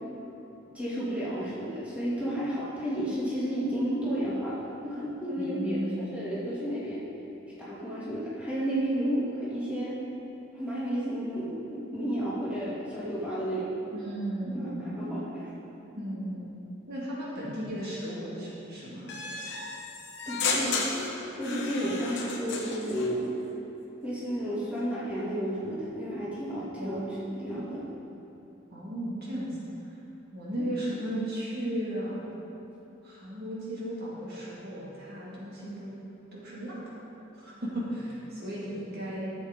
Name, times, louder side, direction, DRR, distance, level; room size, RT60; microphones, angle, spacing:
voice 1, 0.7-7.0 7.6-9.9 10.5-13.7 14.5-15.5 20.3-21.1 21.4-23.3 24.0-27.0 27.4-27.8 30.6-30.7, equal, 5° right, -10 dB, 2.4 m, -32 dB
voice 2, 5.4-6.1 13.9-15.3 16.0-16.5 16.9-19.1 26.8-27.4 28.7-29.6 30.3-32.2 33.0-36.0 36.3-36.9 37.4-39.3, right 1 dB, 50° right, -7 dB, 2.0 m, -35 dB
sound 1, 19.1-23.1, left 4 dB, 55° left, 1.1 m, -33 dB
13.0 x 7.6 x 3.7 m, 3.0 s
head